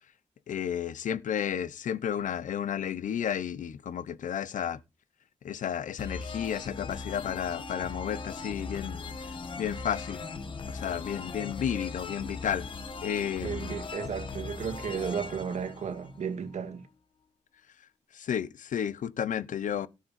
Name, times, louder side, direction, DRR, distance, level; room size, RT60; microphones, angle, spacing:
voice 1, 0.5-4.8 5.4-9.0 9.6-10.2 10.8-12.7 13.0-13.7 18.3-19.9, left 9 dB, 85° left, 0.9 m, -32 dB
sound 1, 6.0-16.6, left 4 dB, 40° left, 1.5 m, -39 dB
voice 2, 13.4-16.9, right 6 dB, 65° right, 1.9 m, -34 dB
17.0 x 7.6 x 4.3 m
wide cardioid pair, 160°, 13 cm